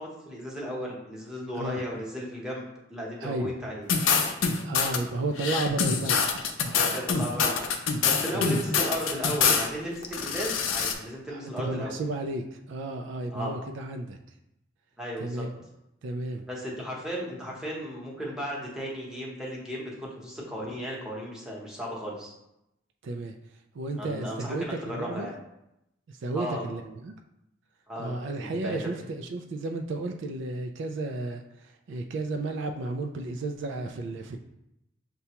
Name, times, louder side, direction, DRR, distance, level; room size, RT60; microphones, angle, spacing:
voice 1, 0.0-3.9 6.7-12.0 13.3-13.6 15.0-15.4 16.5-22.3 24.0-25.3 26.3-26.6 27.9-29.0, equal, 5° right, -4 dB, 0.9 m, -35 dB
voice 2, 3.2-3.5 4.6-6.2 8.3-8.5 11.3-14.2 15.2-15.5 16.0-16.5 23.0-23.3 23.7-25.3 26.1-27.2 28.0-31.4 31.9-34.4, right 2 dB, 65° right, 4 dB, 0.3 m, -33 dB
sound 1, 3.9-5.0 5.4-9.7 10.0-10.9, left 5 dB, 85° left, 0.5 m, -25 dB
6.7 x 2.2 x 2.9 m, 0.87 s
head